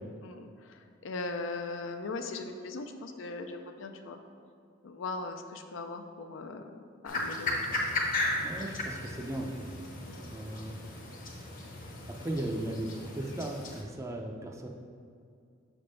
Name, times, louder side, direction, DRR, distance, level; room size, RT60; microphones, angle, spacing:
voice 1, 0.2-4.2 4.8-7.8 10.1-10.3, left 3 dB, 75° left, 6 dB, 0.5 m, -39 dB
sound 1, 7.0-13.8, left 2 dB, 45° left, 0.8 m, -35 dB
voice 2, 8.4-9.8 10.2-10.8 12.1-14.7, right 1 dB, 15° right, 1 dB, 0.5 m, -37 dB
5.8 x 3.5 x 5.2 m, 2.3 s
head